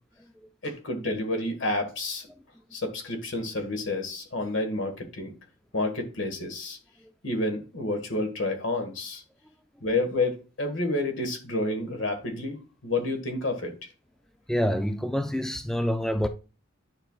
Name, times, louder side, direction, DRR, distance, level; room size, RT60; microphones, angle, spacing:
voice 1, 0.6-2.2 2.7-5.3 5.7-6.8 7.2-9.2 9.8-13.7, left 2 dB, 70° left, 1.6 m, -29 dB
voice 2, 14.5-16.3, equal, 5° left, 0.3 m, -26 dB
10.0 x 5.5 x 2.4 m
head